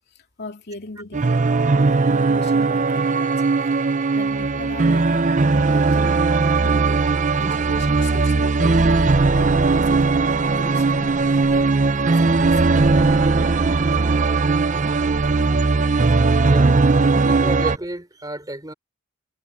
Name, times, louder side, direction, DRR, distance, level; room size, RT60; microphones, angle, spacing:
voice 1, 0.0-7.1 7.4-11.7 12.2-12.8, left 2 dB, 50° left, 2.8 m, -39 dB
sound 1, 1.1-17.8, right 3 dB, 35° right, 0.6 m, -18 dB
voice 2, 13.1-13.6 16.4-16.7 17.2-18.7, right 1 dB, 15° right, 3.7 m, -32 dB
head